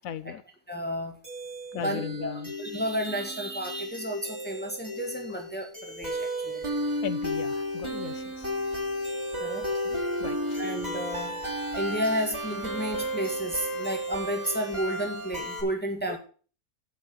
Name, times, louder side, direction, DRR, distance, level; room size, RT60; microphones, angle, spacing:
voice 1, 0.0-0.4 1.7-2.5 7.0-8.5 9.8-10.6 16.1-16.2, left 8 dB, 70° left, 14 dB, 1.1 m, -37 dB
voice 2, 0.7-1.1 1.8-6.7 9.4-9.7 10.6-11.3 11.7-16.2, equal, 5° left, 3 dB, 1.7 m, -32 dB
sound 1, 1.2-15.6, equal, 20° right, 2.9 m, -33 dB
8.3 x 6.1 x 7.7 m, 0.41 s
omnidirectional pair, 1.6 m